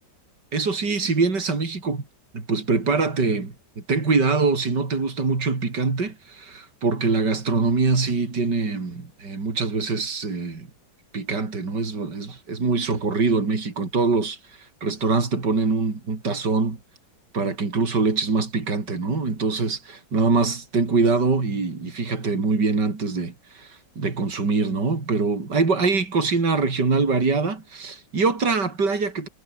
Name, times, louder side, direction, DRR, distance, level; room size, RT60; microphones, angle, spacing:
voice 1, 0.5-2.0 2.3-10.7 11.1-16.8 17.3-29.3, right 4 dB, 65° right, 4.3 m, -24 dB
omnidirectional pair, 2.0 m